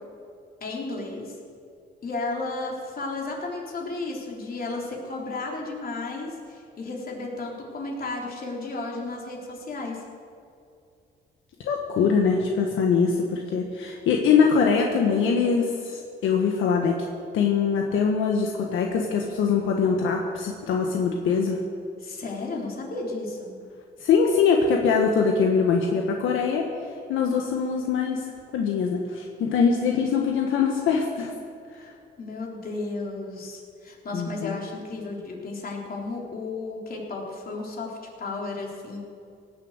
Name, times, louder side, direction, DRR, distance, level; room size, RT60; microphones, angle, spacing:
voice 1, 0.6-1.4 2.0-10.0 22.0-23.6 31.8-39.1, left 3 dB, 50° left, -1 dB, 3.5 m, -33 dB
voice 2, 11.6-17.0 17.3-21.6 24.0-26.7 27.1-31.3 31.7-31.9 34.1-34.6, left 5 dB, 80° left, 1 dB, 1.4 m, -23 dB
18.0 x 7.6 x 8.0 m, 2.4 s
cardioid pair, 90°, 20 cm